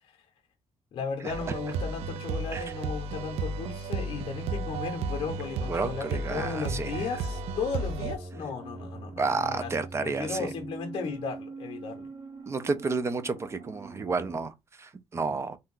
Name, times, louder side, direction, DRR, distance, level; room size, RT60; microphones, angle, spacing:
voice 1, 0.9-9.7 10.0-12.1, left 5 dB, 60° left, 0.7 m, -35 dB
sound 1, 1.3-8.2, right 3 dB, 90° right, 0.4 m, -33 dB
sound 2, 5.2-14.5, right 3 dB, 70° right, 1.0 m, -44 dB
voice 2, 5.6-7.1 9.2-10.5 12.5-15.6, right 4 dB, 25° right, 0.4 m, -31 dB
2.6 x 2.2 x 3.7 m
cardioid pair, 145°, 10 cm